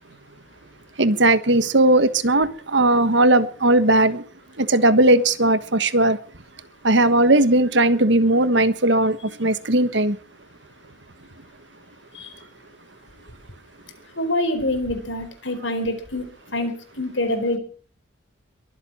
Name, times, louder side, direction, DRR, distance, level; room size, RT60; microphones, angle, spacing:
voice 1, 1.0-4.2 4.6-6.2 6.8-10.2, right 2 dB, 65° right, 1.4 m, -18 dB
voice 2, 14.2-17.6, left 1 dB, 75° left, 4.2 m, -26 dB
23.0 x 8.0 x 7.1 m
head